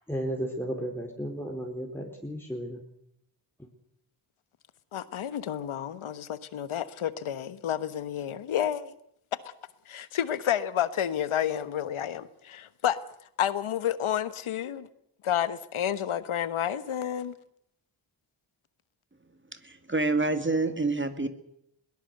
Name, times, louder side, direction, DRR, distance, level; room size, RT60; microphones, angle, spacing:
voice 1, 0.0-2.8 3.6-3.7, equal, 5° left, 4.3 m, -34 dB
voice 2, 4.9-8.9 9.9-13.0 13.4-14.9 15.2-17.3, left 10 dB, 80° left, 1.3 m, -30 dB
voice 3, 19.5-21.3, right 3 dB, 25° right, 2.1 m, -27 dB
21.5 x 17.5 x 7.9 m
supercardioid pair, 40°, 49 cm